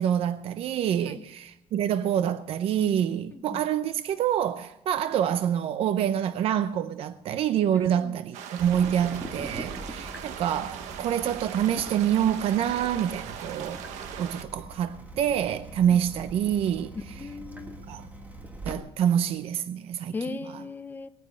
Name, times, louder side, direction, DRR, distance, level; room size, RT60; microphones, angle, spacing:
voice 1, 0.0-13.8 14.2-16.9 17.9-18.1 18.6-20.1, right 9 dB, 55° right, 0.7 m, -26 dB
voice 2, 3.3-3.6 7.7-8.2 15.9-16.0 17.1-17.8 20.1-21.1, left 4 dB, 15° left, 0.7 m, -38 dB
sound 1, 8.3-14.4, right 9 dB, 85° right, 1.3 m, -40 dB
Water tap faucet / Drip, 8.6-18.7, right 2 dB, 15° right, 1.7 m, -42 dB
20.0 x 9.6 x 6.6 m
cardioid pair, 145°, 12 cm